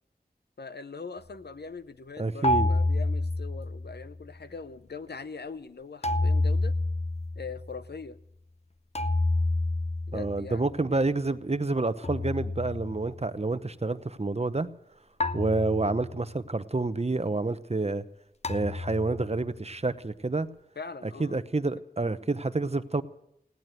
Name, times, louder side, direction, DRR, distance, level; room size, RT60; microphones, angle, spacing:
voice 1, 0.6-6.7 7.4-8.2 10.1-10.7 20.8-21.3 21.6-21.7, left 4 dB, 90° left, 12 dB, 0.7 m, -41 dB
voice 2, 2.2-2.7 10.1-14.7 15.3-18.1 18.5-20.5 21.2-23.0, right 3 dB, 40° right, 12 dB, 0.8 m, -28 dB
sound 1, 2.4-4.2 6.0-7.9 8.9-10.8 12.0-13.5 15.2-16.5 18.4-19.7, left 2 dB, 40° left, 0.6 m, -29 dB
17.0 x 11.0 x 8.0 m, 0.78 s
wide cardioid pair, 55°, 17 cm